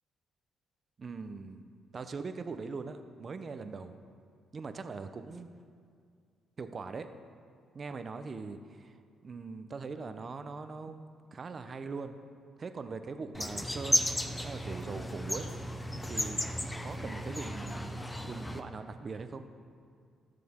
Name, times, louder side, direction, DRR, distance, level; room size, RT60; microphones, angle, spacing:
voice 1, 1.0-3.9 4.5-5.5 6.6-7.1 7.7-9.0 9.2-12.2 12.6-14.1 14.4-15.5 16.0-16.4 16.8-18.0 18.3-19.4, right 4 dB, 40° right, 9 dB, 0.7 m, -41 dB
sound 1, 13.3-18.6, left 1 dB, 15° left, 0.7 m, -34 dB
16.5 x 6.7 x 3.6 m, 2.2 s
cardioid pair, 90°, 0 cm